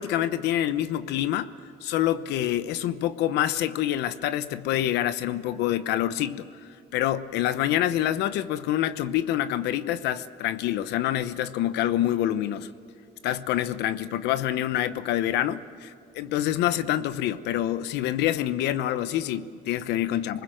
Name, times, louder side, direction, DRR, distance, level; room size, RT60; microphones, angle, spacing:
voice 1, 0.0-1.5 1.8-6.5 6.9-12.7 13.2-20.4, left 12 dB, 85° left, 14 dB, 0.9 m, -26 dB
27.5 x 20.5 x 7.7 m, 2.5 s
cardioid pair, 110°, 17 cm